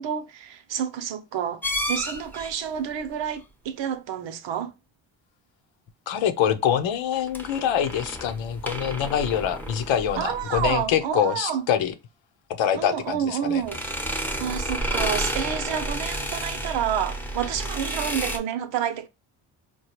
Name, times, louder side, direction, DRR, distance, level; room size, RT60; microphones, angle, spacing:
voice 1, 0.0-1.6 1.9-4.7 10.2-11.6 12.7-13.8 14.4-19.1, right 9 dB, 70° right, 0.8 m, -29 dB
sound 1, 1.6-2.5 7.1-10.9 13.6-18.4, right 1 dB, 5° left, 0.9 m, -31 dB
voice 2, 6.1-11.9 12.6-13.6, left 9 dB, 80° left, 0.9 m, -25 dB
4.4 x 2.3 x 3.0 m
cardioid pair, 85°, 45 cm